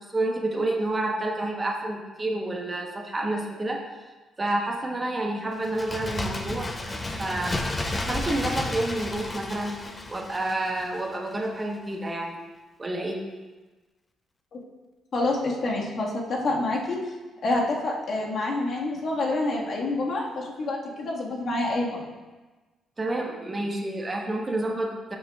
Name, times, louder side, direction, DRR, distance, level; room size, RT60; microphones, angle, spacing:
voice 1, 0.1-3.8 4.4-6.7 7.2-7.6 7.9-9.8 10.1-12.4 12.8-13.2 23.0-25.2, right 2 dB, 25° right, 0 dB, 1.1 m, -29 dB
Bird, 5.6-11.2 11.5-11.6, left 2 dB, 20° left, 0.8 m, -32 dB
voice 2, 15.1-17.0 17.4-22.1, left 2 dB, 60° left, -3 dB, 1.7 m, -27 dB
11.5 x 6.6 x 2.4 m, 1.2 s
cardioid pair, 90°, 0 cm